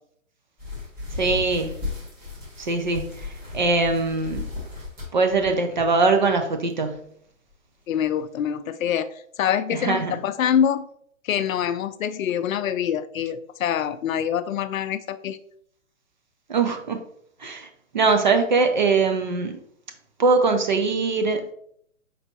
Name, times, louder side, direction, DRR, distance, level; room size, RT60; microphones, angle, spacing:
sound 1, 0.6-6.3 6.7-6.9 7.5-7.6 8.0-8.1, left 3 dB, 20° right, 1.9 m, -35 dB
voice 1, 1.2-1.8 2.6-4.5 5.1-7.0 9.7-10.1 16.5-17.0 17.4-17.7 17.9-19.6 20.2-21.4, right 3 dB, 35° right, 6 dB, 0.4 m, -22 dB
voice 2, 7.9-9.1 9.4-10.9 11.2-15.4, left 9 dB, 75° left, 12 dB, 0.5 m, -25 dB
4.6 x 3.9 x 2.8 m, 0.67 s
hypercardioid pair, 150°, 41 cm